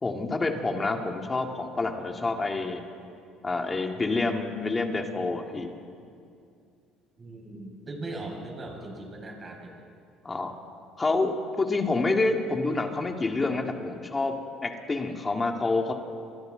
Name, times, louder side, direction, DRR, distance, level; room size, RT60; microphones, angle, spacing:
voice 1, 0.0-2.8 3.4-5.7 10.2-10.5 11.0-14.3 14.6-15.9, left 3 dB, 20° left, 3 dB, 2.2 m, -28 dB
voice 2, 7.2-9.8, right 2 dB, 30° right, 0 dB, 5.7 m, -39 dB
28.5 x 23.5 x 4.0 m, 2.4 s
cardioid pair, 100°, 0 cm